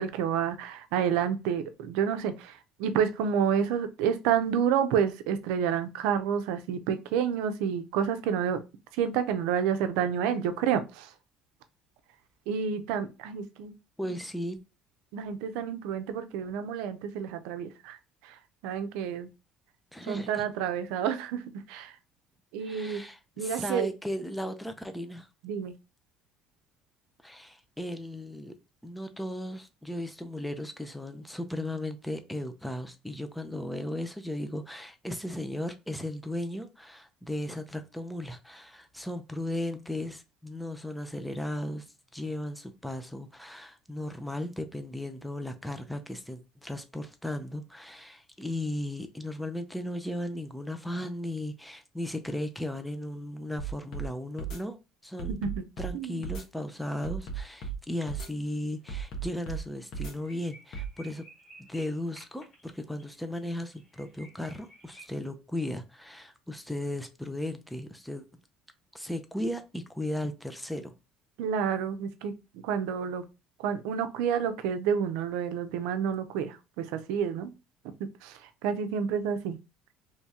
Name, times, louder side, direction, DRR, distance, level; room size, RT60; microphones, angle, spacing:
voice 1, 0.0-8.6 8.9-11.1 12.5-13.7 14.0-14.2 15.1-18.0 18.2-19.3 20.0-21.4 21.7-22.0 22.5-23.0 23.4-23.9 25.4-25.7 55.4-55.6 55.9-56.2 71.4-73.2 73.6-77.5 78.0-79.6, right 8 dB, 90° right, 0.5 m, -29 dB
voice 2, 14.0-14.6 19.9-20.5 22.6-25.3 27.2-28.6 28.8-55.4 55.8-61.2 61.6-68.2 68.9-70.9, left 1 dB, 5° left, 0.5 m, -36 dB
sound 1, 53.6-54.1 54.4-54.6 55.2-55.9 56.2-56.4 57.0-57.8 58.1-58.3 58.9-59.6 59.9-60.1 60.7-60.9, right 6 dB, 60° left, 1.2 m, -35 dB
sound 2, 58.3-58.6 58.9-59.0 59.4-59.5 59.8-65.1, right 1 dB, 40° left, 1.9 m, -54 dB
3.1 x 2.8 x 3.6 m
cardioid pair, 105°, 0 cm